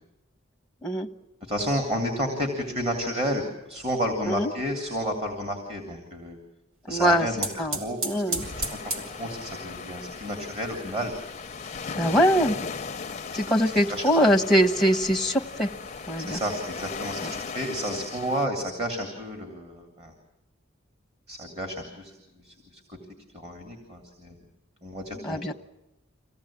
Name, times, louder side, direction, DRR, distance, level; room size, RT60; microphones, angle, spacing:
voice 1, 1.4-6.4 6.9-8.4 8.8-8.9 9.2-11.1 13.3-14.4 16.2-20.1 21.3-22.1 22.4-22.8 23.3-24.4 24.8-25.4, equal, 30° right, 3 dB, 3.1 m, -31 dB
voice 2, 6.9-7.3 7.6-8.5 11.9-12.6 13.3-15.7 16.1-16.4 25.1-25.5, equal, ahead, 3 dB, 1.1 m, -23 dB
sound 1, 7.1-17.5, right 2 dB, 75° right, 3.3 m, -40 dB
sound 2, 8.4-18.5, left 5 dB, 35° left, 0.7 m, -37 dB
25.5 x 17.5 x 8.7 m, 1.0 s
head